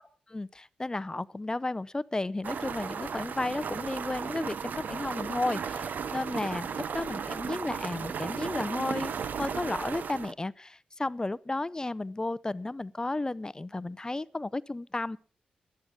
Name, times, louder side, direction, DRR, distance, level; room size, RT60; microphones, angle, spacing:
voice 1, 0.3-9.1 9.4-15.2, left 2 dB, 25° left, 0.5 m, -33 dB
sound 1, 2.4-10.3, right 6 dB, 70° right, 0.7 m, -35 dB
11.5 x 11.5 x 5.9 m
cardioid pair, 50°, 3 cm